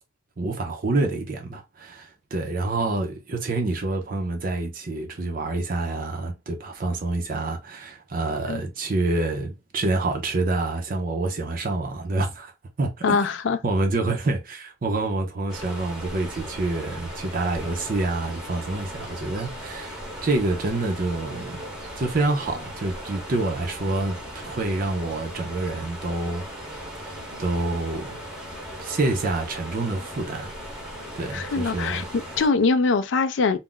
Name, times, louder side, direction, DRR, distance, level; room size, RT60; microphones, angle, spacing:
voice 1, 0.4-12.5 12.8-13.3 13.6-21.6 22.0-26.4 27.0-28.2 28.8-30.5 31.1-32.1, right 2 dB, 45° right, 0.5 m, -27 dB
voice 2, 13.0-13.6 31.3-33.6, left 4 dB, 65° left, 0.4 m, -23 dB
sound 1, 15.5-32.5, equal, 5° right, 0.7 m, -38 dB
2.4 x 2.0 x 3.6 m
head